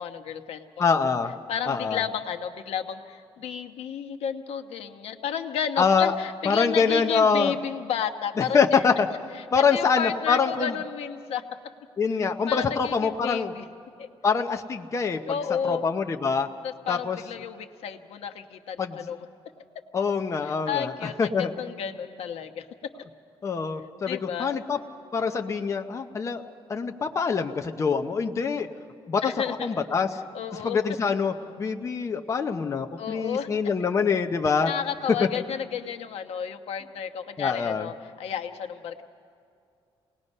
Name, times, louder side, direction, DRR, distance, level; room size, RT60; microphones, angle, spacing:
voice 1, 0.0-1.0 1.5-8.8 9.4-11.4 12.2-13.6 14.0-14.1 15.3-15.8 16.6-19.3 20.4-21.3 21.6-22.7 24.1-24.5 29.2-29.9 30.3-30.8 33.0-33.5 34.7-39.0, left 8 dB, 80° left, 4 dB, 1.1 m, -32 dB
voice 2, 0.8-1.3 1.7-2.0 5.8-6.1 6.5-7.5 8.4-9.1 9.5-10.7 12.0-13.5 14.2-15.2 15.6-16.5 16.9-17.2 18.8-19.1 19.9-21.5 23.4-24.8 25.1-26.4 26.7-28.7 29.1-30.1 30.6-34.7 37.4-37.9, left 5 dB, 30° left, 4 dB, 0.8 m, -25 dB
28.5 x 19.5 x 5.5 m, 2.4 s
cardioid pair, 155°, 10 cm